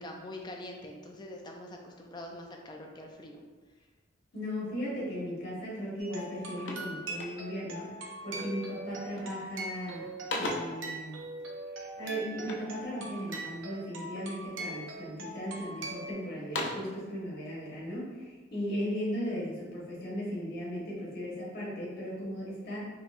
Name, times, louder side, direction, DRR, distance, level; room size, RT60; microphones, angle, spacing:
voice 1, 0.0-3.4, left 1 dB, 25° left, 1 dB, 0.4 m, -44 dB
voice 2, 4.3-7.8 8.2-10.0 10.4-11.2 11.8-22.8, equal, 50° left, -6 dB, 1.3 m, -37 dB
sound 1, 5.7-5.9 6.2-7.7 8.4-8.7 9.0-9.5 9.9-10.9 12.4-13.6 14.1-14.7 15.3-15.9 16.3-17.0, left 2 dB, 70° left, 0.5 m, -39 dB
sound 2, 6.0-16.1, right 2 dB, 85° right, 0.6 m, -42 dB
3.8 x 2.9 x 2.5 m, 1.3 s
head